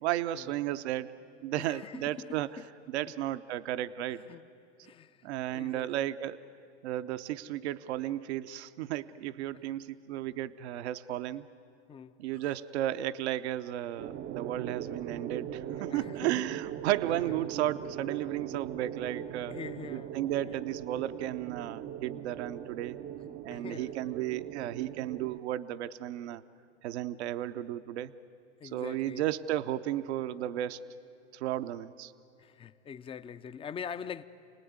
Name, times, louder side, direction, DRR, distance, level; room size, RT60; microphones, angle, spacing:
voice 1, 0.0-2.6 2.9-4.2 5.2-6.4 6.8-11.5 12.2-19.6 19.9-23.0 23.4-26.4 26.8-28.1 28.6-30.8 31.3-32.1, right 13 dB, 65° right, 0.8 m, -34 dB
voice 2, 1.6-2.6 4.3-4.5 4.8-6.1 9.5-9.6 11.9-12.4 15.7-16.5 19.5-20.1 23.5-24.1 28.6-29.3 32.4-34.2, left 7 dB, 15° left, 0.6 m, -44 dB
sound 1, 14.0-25.4, right 11 dB, 30° right, 0.6 m, -40 dB
28.0 x 19.0 x 9.5 m
hypercardioid pair, 120°, 35 cm